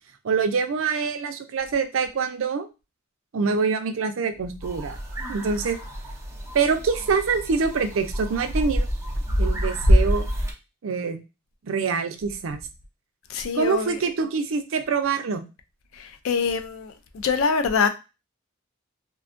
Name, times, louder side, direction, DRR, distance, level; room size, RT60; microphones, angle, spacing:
voice 1, 0.2-2.7 3.3-5.0 5.3-5.8 6.5-8.9 9.4-10.3 10.8-11.2 11.6-12.6 13.5-15.4, right 5 dB, 70° right, 0.4 m, -25 dB
Pine forest birds in Maclear Eastern Cape, 4.6-10.5, equal, 15° right, 0.5 m, -25 dB
voice 2, 13.3-14.0 16.0-16.9 17.2-17.9, left 5 dB, 80° left, 0.4 m, -24 dB
2.6 x 2.2 x 2.5 m
head